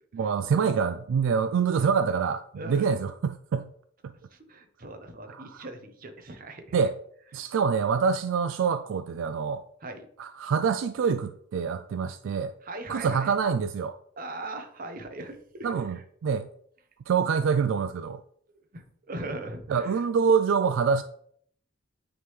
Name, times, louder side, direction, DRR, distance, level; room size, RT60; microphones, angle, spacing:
voice 1, 0.1-3.7 4.0-4.1 5.3-5.7 6.7-6.9 7.3-9.6 10.2-12.5 12.9-13.9 15.6-16.5 17.1-18.2 19.7-21.0, right 6 dB, 80° right, 0.3 m, -26 dB
voice 2, 2.5-2.9 4.3-6.8 7.4-7.5 9.8-10.1 12.6-13.3 14.2-16.0 18.5-20.0, right 2 dB, 45° right, 0.9 m, -40 dB
9.4 x 3.8 x 3.2 m
head